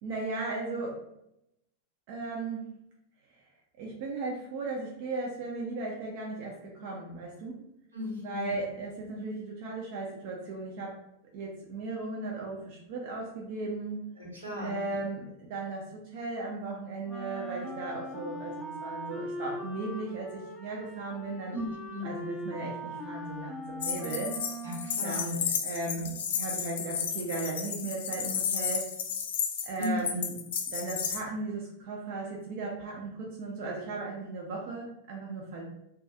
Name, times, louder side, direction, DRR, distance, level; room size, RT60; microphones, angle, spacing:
voice 1, 0.0-1.0 2.1-2.7 3.8-7.6 8.2-11.0 11.3-14.0 14.6-21.6 22.0-24.4 25.0-28.9 29.6-30.3 30.7-35.6, right 3 dB, 50° right, -2 dB, 0.5 m, -36 dB
voice 2, 7.9-8.5 8.9-9.0 14.2-14.8 21.5-22.2 24.6-25.3 25.9-26.0 29.8-30.3, left 1 dB, 80° right, -4 dB, 0.9 m, -36 dB
Wind instrument woodwind instrument, 17.1-25.2, right 1 dB, ahead, 0.5 m, -40 dB
sound 1, 23.8-31.2, left 7 dB, 60° left, 0.3 m, -33 dB
2.3 x 2.2 x 2.7 m, 0.80 s
figure-of-eight pair, 90°, 0 cm